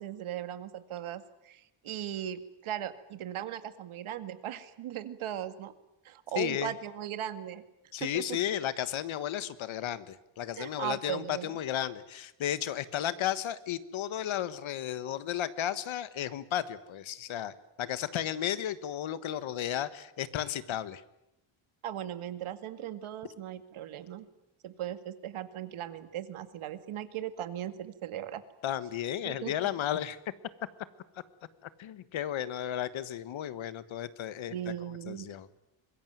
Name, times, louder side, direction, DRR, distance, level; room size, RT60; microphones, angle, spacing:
voice 1, 0.0-5.7 6.0-7.6 8.0-8.4 10.6-11.5 21.8-24.3 24.6-28.4 29.2-29.7 34.5-35.3, right 11 dB, 75° right, 11 dB, 2.1 m, -38 dB
voice 2, 6.3-6.7 7.9-21.0 28.6-30.2 31.8-34.5 35.1-35.5, left 11 dB, 70° left, 14 dB, 1.6 m, -34 dB
25.0 x 21.5 x 9.3 m, 0.85 s
cardioid pair, 155°, 49 cm